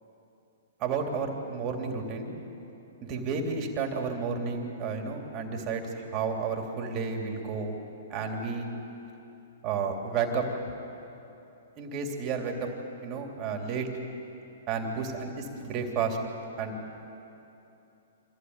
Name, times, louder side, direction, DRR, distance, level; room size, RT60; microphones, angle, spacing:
voice 1, 0.8-2.3 3.1-7.8 8.1-8.7 9.6-10.5 11.8-12.7 13.0-13.9 14.7-16.2 16.6-16.8, right 5 dB, 30° right, 2 dB, 2.9 m, -31 dB
25.5 x 16.0 x 9.6 m, 2.9 s
hypercardioid pair, 140°, 0 cm